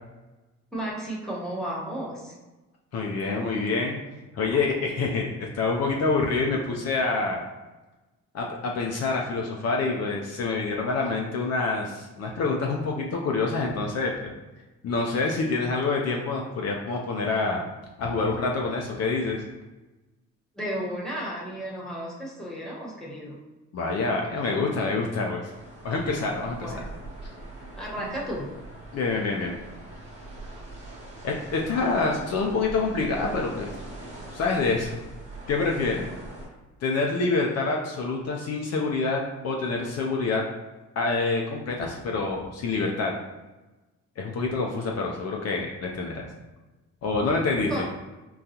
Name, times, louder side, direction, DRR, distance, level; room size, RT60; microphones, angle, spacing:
voice 1, 0.7-2.4 20.5-23.4 26.6-26.9 27.8-28.5 47.7-47.9, right 1 dB, ahead, -5 dB, 1.0 m, -33 dB
voice 2, 2.9-4.0 4.3-7.4 8.3-14.3 14.8-17.6 18.0-19.4 23.7-25.5 25.8-26.6 28.9-29.6 31.2-33.7 34.3-35.0 35.5-36.0 36.8-40.4 41.0-43.1 44.2-46.3 47.0-47.8, left 3 dB, 55° left, 0 dB, 0.5 m, -26 dB
sound 1, 25.5-36.5, right 2 dB, 20° right, 1.1 m, -42 dB
3.8 x 2.3 x 2.8 m, 1.1 s
cardioid pair, 90°, 30 cm